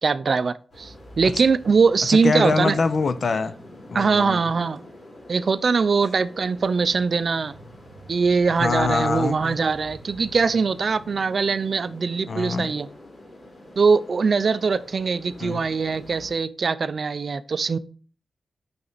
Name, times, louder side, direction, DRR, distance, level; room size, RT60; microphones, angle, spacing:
voice 1, 0.0-2.8 3.9-4.8 5.3-7.5 8.1-12.9 13.8-17.8, right 5 dB, 55° right, 0.5 m, -22 dB
sound 1, 0.7-16.3, equal, 40° left, 4.1 m, -45 dB
voice 2, 2.1-3.5 3.9-4.4 8.6-9.6 12.3-12.7 15.4-15.6, left 4 dB, 55° left, 0.7 m, -24 dB
9.6 x 6.0 x 4.0 m
wide cardioid pair, 130°, 0 cm